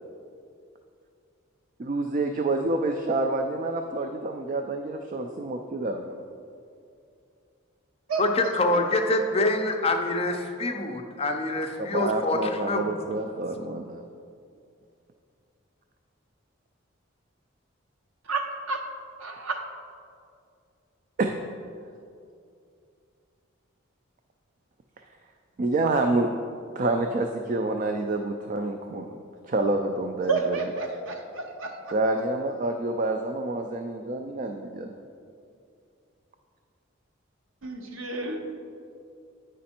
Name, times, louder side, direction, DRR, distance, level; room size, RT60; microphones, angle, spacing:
voice 1, 1.8-6.2 11.8-14.0 21.2-21.3 25.6-26.3 26.8-29.1 29.5-30.6 31.9-35.0, right 2 dB, 40° right, 5 dB, 0.3 m, -28 dB
voice 2, 8.2-12.8, left 2 dB, 30° left, 4 dB, 0.5 m, -25 dB
voice 3, 18.3-18.8 19.2-19.6 30.2-31.9 37.6-38.4, right 4 dB, 75° right, 4 dB, 0.8 m, -30 dB
8.7 x 5.1 x 4.3 m, 2.4 s
head